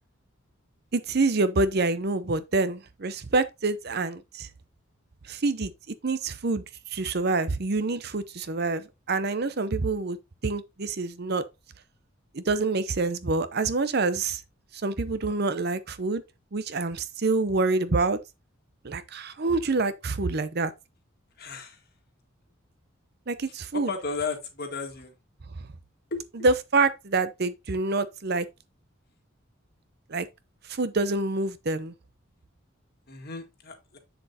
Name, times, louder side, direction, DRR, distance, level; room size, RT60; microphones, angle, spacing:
voice 1, 0.9-4.5 5.3-6.6 6.9-10.2 10.4-11.4 12.3-14.4 14.7-16.2 16.5-18.2 18.8-20.7 23.3-23.9 26.4-28.5 30.1-30.3 30.7-31.9, right 3 dB, 50° right, 0.7 m, -26 dB
voice 2, 21.4-21.8 23.7-25.1 26.1-26.2 33.1-34.0, left 4 dB, 50° left, 1.7 m, -34 dB
7.8 x 6.9 x 2.8 m
head